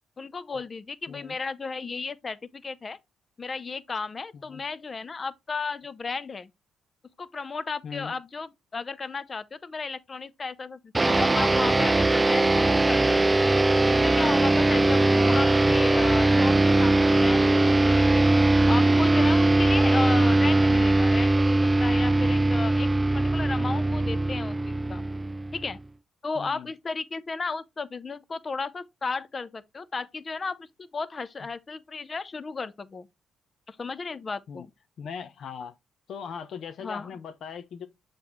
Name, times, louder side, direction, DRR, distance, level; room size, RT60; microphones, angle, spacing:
voice 1, 0.2-3.0 3.4-6.5 7.2-13.4 13.9-18.3 18.7-22.9 23.1-25.0 25.5-25.8 26.2-33.1 33.7-34.7 36.8-37.2, left 4 dB, 35° left, 0.6 m, -34 dB
sound 1, 10.9-25.8, right 2 dB, 20° right, 0.3 m, -21 dB
voice 2, 26.3-26.7 34.5-34.6 35.0-35.7 36.1-37.9, left 6 dB, 65° left, 0.9 m, -40 dB
7.0 x 4.4 x 3.1 m
cardioid pair, 90°, 0 cm